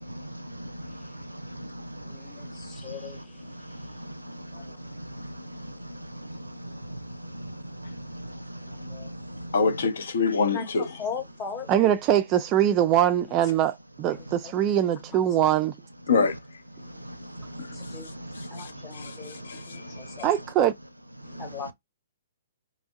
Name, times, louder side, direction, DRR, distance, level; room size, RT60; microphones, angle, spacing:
voice 1, 0.0-3.2 3.7-9.5 17.0-18.7 19.0-20.2 21.4-21.5, right 1 dB, 90° right, 0.4 m, -40 dB
voice 2, 2.0-3.2 4.5-4.7 8.8-9.1 10.5-10.7 11.0-11.7 17.7-20.3 21.3-21.7, left 5 dB, 20° left, 0.9 m, -39 dB
voice 3, 9.5-11.0 16.1-16.4 17.6-17.7 18.4-19.8, left 4 dB, 55° left, 0.6 m, -26 dB
voice 4, 11.7-15.7 20.2-20.7, right 11 dB, 25° right, 0.3 m, -22 dB
3.5 x 2.1 x 2.2 m
figure-of-eight pair, 120°, 0 cm